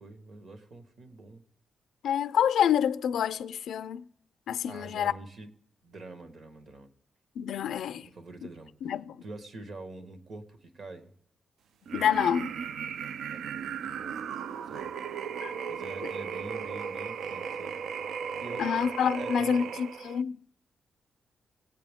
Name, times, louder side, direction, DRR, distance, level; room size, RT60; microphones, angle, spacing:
voice 1, 0.0-1.4 4.7-5.5 5.8-6.9 8.0-8.7 9.2-11.1 13.3-14.2 14.6-14.9 15.7-17.8 18.4-18.7 19.1-19.7, right 2 dB, 50° right, 1.3 m, -45 dB
voice 2, 2.0-4.0 4.5-5.1 7.4-8.1 8.8-9.2 11.9-12.5 15.4-15.5 18.6-20.4, left 8 dB, 85° left, 0.4 m, -27 dB
sound 1, 11.9-20.2, right 7 dB, 85° right, 0.4 m, -36 dB
19.0 x 8.1 x 3.5 m
wide cardioid pair, 165°, 0 cm